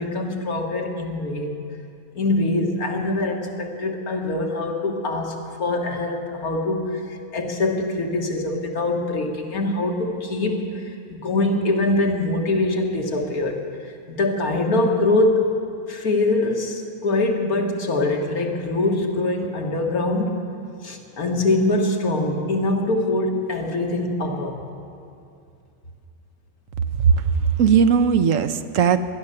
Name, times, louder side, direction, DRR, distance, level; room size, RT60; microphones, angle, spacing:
voice 1, 0.0-1.5 2.1-7.0 7.3-10.8 11.1-15.4 15.9-20.4 20.8-24.6, left 2 dB, 85° left, 2 dB, 2.0 m, -23 dB
voice 2, 27.1-29.0, right 7 dB, 70° right, 10 dB, 1.0 m, -18 dB
19.0 x 11.0 x 6.7 m, 2.5 s
omnidirectional pair, 1.5 m